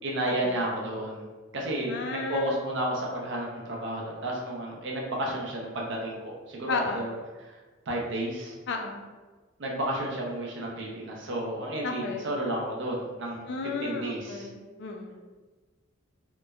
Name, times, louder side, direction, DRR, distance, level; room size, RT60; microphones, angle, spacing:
voice 1, 0.0-1.3 1.5-7.6 7.9-8.5 9.6-13.5 13.8-14.5, right 1 dB, 60° right, -2 dB, 0.6 m, -32 dB
voice 2, 1.9-2.6 6.7-7.0 8.7-9.0 11.8-12.3 13.5-15.2, left 4 dB, 60° left, 4 dB, 0.3 m, -33 dB
2.9 x 2.1 x 2.3 m, 1.3 s
head